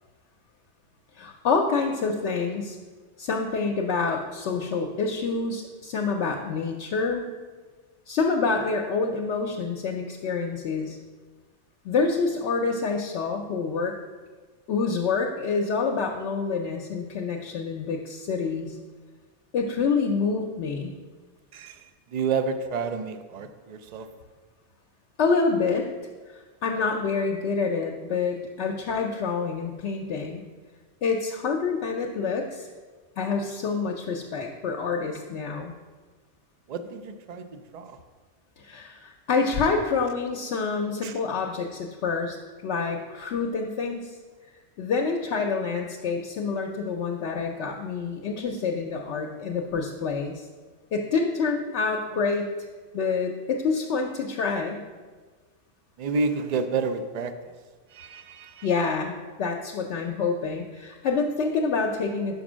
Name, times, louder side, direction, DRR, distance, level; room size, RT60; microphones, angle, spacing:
voice 1, 1.1-2.8 3.2-7.2 8.1-11.0 11.8-14.0 14.7-18.8 19.5-20.9 25.2-25.8 26.3-30.5 31.0-32.7 33.2-35.7 38.6-42.4 42.6-44.1 44.8-50.5 50.9-52.5 52.9-54.8 58.6-59.1 59.4-62.4, left 4 dB, 70° left, 1 dB, 0.8 m, -27 dB
voice 2, 21.5-21.8 22.1-24.1 36.7-38.0 41.0-41.1 56.0-57.3 57.9-58.7, right 4 dB, 65° right, 9 dB, 0.4 m, -30 dB
5.4 x 5.2 x 6.1 m, 1.4 s
omnidirectional pair, 1.2 m